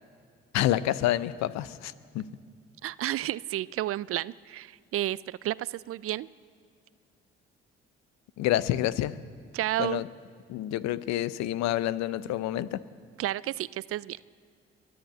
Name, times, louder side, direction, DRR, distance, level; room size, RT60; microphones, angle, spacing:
voice 1, 0.5-2.2 8.4-9.1 9.8-10.0 10.5-12.8, left 13 dB, 65° left, 16 dB, 0.6 m, -28 dB
voice 2, 2.8-6.3 9.5-10.0 13.2-14.2, right 14 dB, 50° right, 20 dB, 0.4 m, -31 dB
22.0 x 7.9 x 7.8 m, 2.2 s
hypercardioid pair, 45°, 29 cm